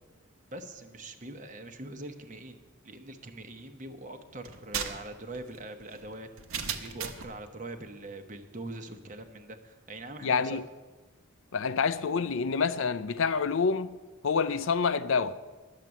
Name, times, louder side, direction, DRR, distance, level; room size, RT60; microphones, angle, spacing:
voice 1, 0.5-2.6 2.8-6.3 6.8-10.6, right 2 dB, 35° right, 1.0 m, -43 dB
sound 1, 4.4-7.4, right 7 dB, 85° right, 1.1 m, -37 dB
voice 2, 10.2-10.6 11.5-14.0 14.2-15.4, left 5 dB, 70° left, 0.5 m, -27 dB
10.5 x 7.5 x 9.8 m
head